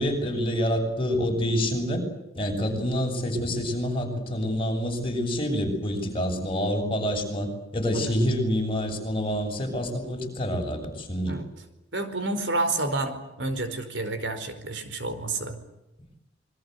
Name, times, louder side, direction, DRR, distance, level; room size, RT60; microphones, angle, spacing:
voice 1, 0.0-2.0 2.4-11.4, equal, 30° left, 2 dB, 7.3 m, -27 dB
voice 2, 11.9-15.6, right 2 dB, 70° right, 9 dB, 4.7 m, -29 dB
27.5 x 22.5 x 8.2 m, 0.95 s
head